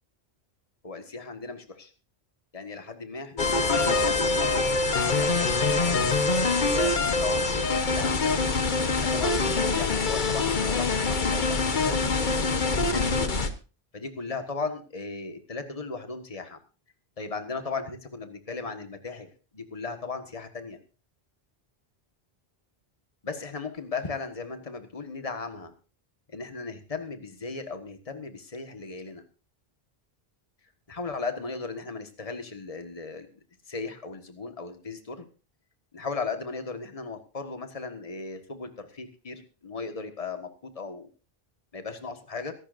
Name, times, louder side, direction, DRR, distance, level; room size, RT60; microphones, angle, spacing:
voice 1, 0.8-1.9 2.5-4.4 5.0-8.4 8.8-12.2 12.7-13.4 13.9-16.6 17.2-19.3 19.5-20.8 23.2-25.7 26.3-29.2 30.9-33.3 33.7-35.2 35.9-41.1 41.7-42.5, left 4 dB, 35° left, 7 dB, 1.6 m, -37 dB
sound 1, 3.4-13.5, left 3 dB, 50° left, 1.3 m, -24 dB
23.5 x 12.0 x 2.6 m, 0.34 s
omnidirectional pair, 1.0 m